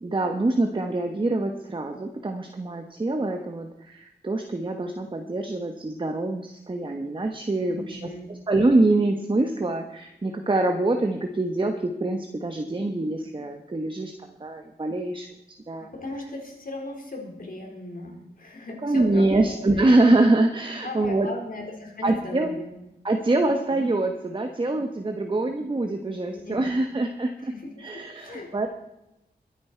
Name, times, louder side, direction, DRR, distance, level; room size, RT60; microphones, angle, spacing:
voice 1, 0.0-14.1 14.4-15.3 15.7-15.9 18.8-21.3 22.0-22.5 23.0-27.5 27.8-28.7, right 2 dB, 30° right, 4 dB, 1.2 m, -25 dB
voice 2, 7.7-8.4 15.8-19.9 20.8-22.8 26.3-26.9 27.4-28.5, left 2 dB, 55° left, 0 dB, 4.5 m, -38 dB
22.5 x 9.6 x 4.5 m, 0.91 s
wide cardioid pair, 110°, 17 cm